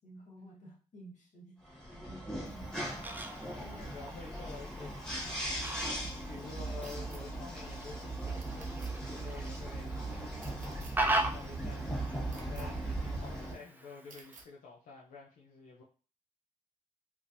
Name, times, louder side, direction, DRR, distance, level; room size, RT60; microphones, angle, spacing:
voice 1, 0.0-3.1 6.0-6.4, right 1 dB, 65° left, -1 dB, 1.5 m, -54 dB
sound 1, 1.6-13.5, right 1 dB, 5° left, 1.3 m, -39 dB
Fowl, 2.5-14.4, right 2 dB, 15° right, 0.5 m, -40 dB
voice 2, 3.6-5.5 5.9-10.5 11.0-15.8, left 4 dB, 90° left, -3 dB, 0.6 m, -50 dB
sound 2, 6.8-7.2 8.4-8.9 10.4-10.9 12.3-12.7 14.1-14.5, right 4 dB, 70° right, 0.8 m, -54 dB
3.4 x 3.0 x 2.6 m, 0.36 s
cardioid pair, 65°, 14 cm